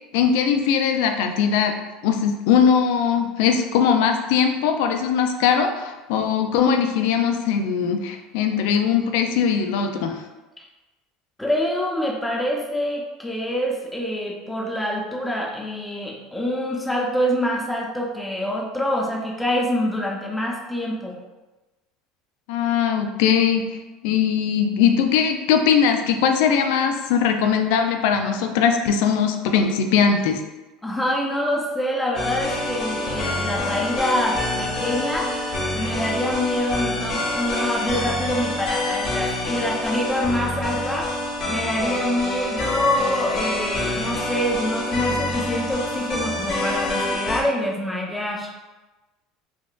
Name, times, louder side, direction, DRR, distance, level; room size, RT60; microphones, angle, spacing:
voice 1, 0.1-1.7 2.0-10.2 22.5-23.8 24.0-30.4, left 7 dB, 75° left, 5 dB, 0.3 m, -20 dB
voice 2, 11.4-21.2 30.8-35.3 35.7-41.2 41.5-48.5, left 1 dB, 5° left, -2 dB, 0.7 m, -25 dB
sound 1, 32.2-47.4, left 2 dB, 50° left, 1.0 m, -26 dB
3.7 x 2.4 x 2.4 m, 1.1 s
supercardioid pair, 90°, 0 cm